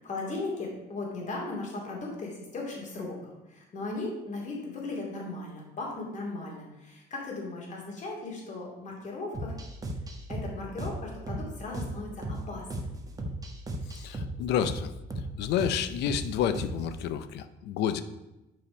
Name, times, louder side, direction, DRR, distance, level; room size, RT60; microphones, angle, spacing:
voice 1, 0.0-9.5 10.3-13.0, left 2 dB, 45° left, -1 dB, 2.7 m, -37 dB
sound 1, 9.3-17.0, right 1 dB, 20° right, 1.3 m, -36 dB
voice 2, 13.8-18.0, left 9 dB, 80° left, 12 dB, 0.6 m, -30 dB
7.6 x 5.1 x 5.3 m, 0.97 s
cardioid pair, 110°, 17 cm